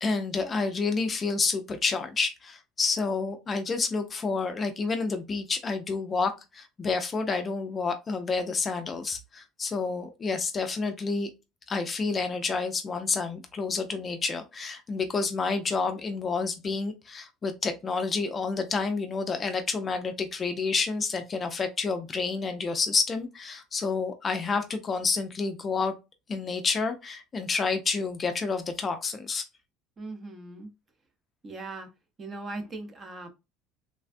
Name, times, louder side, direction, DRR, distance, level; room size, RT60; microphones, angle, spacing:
voice 1, 0.0-11.3 11.7-25.9 26.3-29.4, left 4 dB, 25° left, 0.4 m, -29 dB
voice 2, 30.0-30.7 31.4-31.9 32.2-33.3, right 2 dB, 25° right, 0.7 m, -39 dB
3.3 x 2.2 x 2.4 m
cardioid pair, 140°, 0 cm